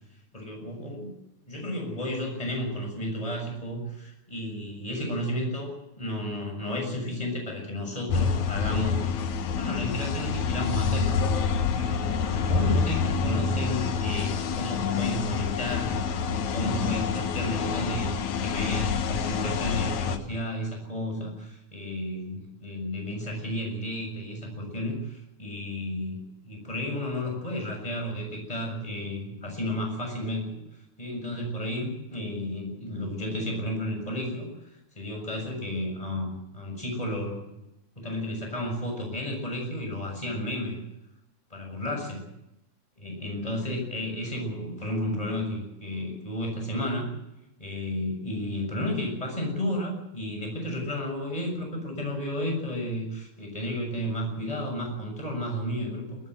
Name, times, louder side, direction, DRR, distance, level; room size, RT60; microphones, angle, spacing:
voice 1, 0.3-1.1 1.5-9.0 9.5-11.5 11.7-30.6 31.0-34.5 34.9-37.4 37.9-40.8 41.5-42.2 43.0-47.1 47.6-56.2, left 1 dB, 10° left, 2 dB, 6.8 m, -32 dB
sound 1, 8.1-20.2, left 6 dB, 80° left, 2.6 m, -27 dB
22.0 x 18.5 x 7.9 m, 0.89 s
omnidirectional pair, 3.3 m